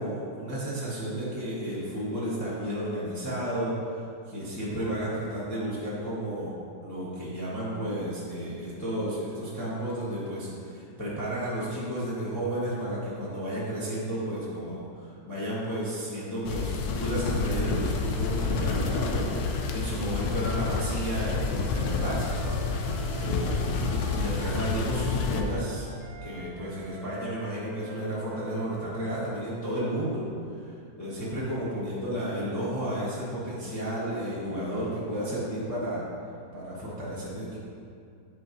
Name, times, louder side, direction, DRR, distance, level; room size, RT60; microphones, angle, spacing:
voice 1, 0.0-3.7 4.3-6.5 6.8-25.9 26.2-30.2 30.5-36.0 36.5-37.6, right 1 dB, 10° left, -9 dB, 0.9 m, -32 dB
sound 1, 16.4-25.4, left 4 dB, 70° left, 1.0 m, -29 dB
Wind instrument woodwind instrument, 20.6-29.1, equal, 80° right, 0.6 m, -46 dB
8.2 x 4.8 x 2.6 m, 2.4 s
omnidirectional pair, 1.9 m